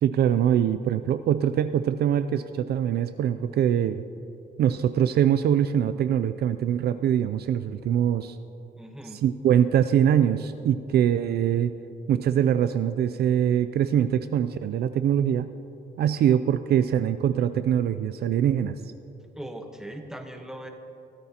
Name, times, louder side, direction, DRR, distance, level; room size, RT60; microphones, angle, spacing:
voice 1, 0.0-4.0 4.6-8.4 9.1-11.7 12.1-15.5 16.0-18.8, right 9 dB, 60° right, 11 dB, 0.4 m, -23 dB
voice 2, 8.8-9.2 19.3-20.7, right 1 dB, 5° right, 3 dB, 1.1 m, -39 dB
23.0 x 13.5 x 2.9 m, 2.8 s
cardioid pair, 150°, 19 cm